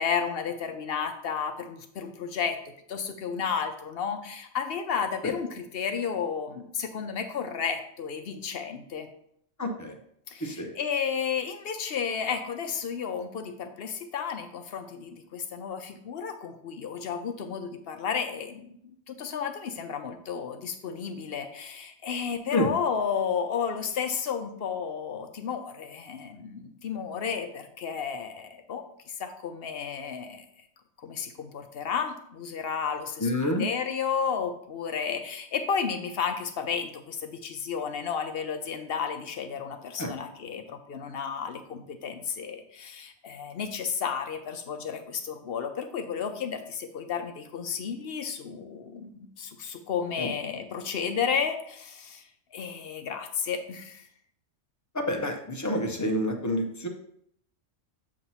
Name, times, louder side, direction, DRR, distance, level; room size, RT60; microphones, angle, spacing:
voice 1, 0.0-2.6 2.9-9.1 10.3-18.7 19.1-30.4 31.0-54.0, left 6 dB, 60° left, 6 dB, 0.7 m, -32 dB
voice 2, 9.6-9.9 10.4-10.7 22.5-22.7 33.2-33.6 40.0-40.1 50.2-50.3 54.9-56.9, left 1 dB, 20° left, 3 dB, 0.5 m, -28 dB
7.2 x 2.9 x 5.5 m, 0.71 s
omnidirectional pair, 1.3 m